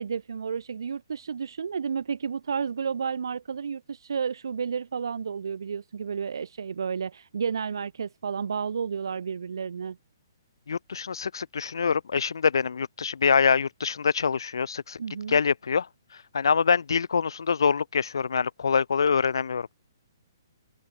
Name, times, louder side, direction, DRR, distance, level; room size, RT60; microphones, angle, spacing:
voice 1, 0.0-10.0 15.0-15.4, right 6 dB, 80° right, 0.4 m, -31 dB
voice 2, 10.7-15.0 15.3-15.9 16.3-19.7, left 6 dB, 85° left, 0.8 m, -25 dB
open air
hypercardioid pair, 175°, 2 cm